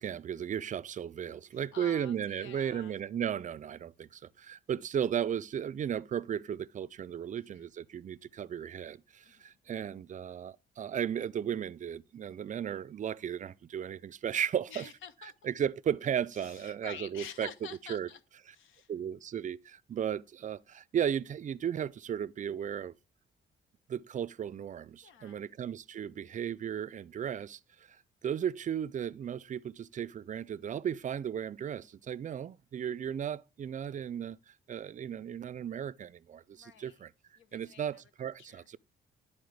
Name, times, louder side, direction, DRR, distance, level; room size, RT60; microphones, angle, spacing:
voice 1, 0.0-14.9 15.4-17.5 17.9-18.1 18.9-22.9 23.9-27.6 27.9-28.0 28.2-37.1 37.5-38.8, right 9 dB, 40° right, 0.4 m, -35 dB
voice 2, 1.5-3.0 7.4-7.6 9.2-9.6 14.7-15.5 16.3-18.2 18.5-18.9 25.0-25.4 33.9-34.1 36.5-37.0 37.4-38.0 38.4-38.7, left 8 dB, 80° left, 0.9 m, -49 dB
11.0 x 4.2 x 3.2 m
cardioid pair, 90°, 20 cm